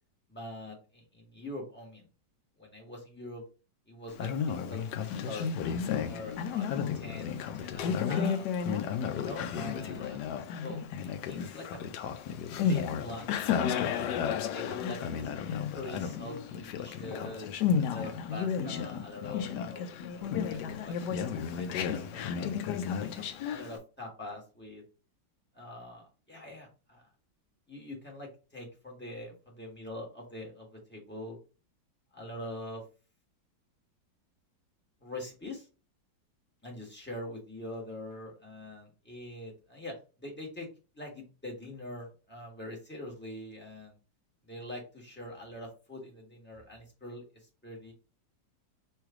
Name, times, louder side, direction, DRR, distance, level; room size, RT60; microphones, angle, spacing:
voice 1, 0.3-2.0 2.6-3.4 3.9-5.5 5.9-6.7 6.9-8.4 9.1-10.3 10.6-10.8 11.3-11.9 12.7-13.5 13.8-14.2 14.5-15.3 15.7-17.5 17.9-22.6 23.0-24.8 25.5-27.0 27.7-31.4 32.1-32.8 35.0-35.7 36.6-40.7 40.9-44.0 44.4-47.2 47.6-47.9, left 1 dB, 5° left, -1 dB, 1.4 m, -44 dB
Conversation, 4.1-23.8, left 7 dB, 75° left, 1.1 m, -33 dB
3.2 x 3.1 x 4.7 m, 0.33 s
omnidirectional pair, 1.9 m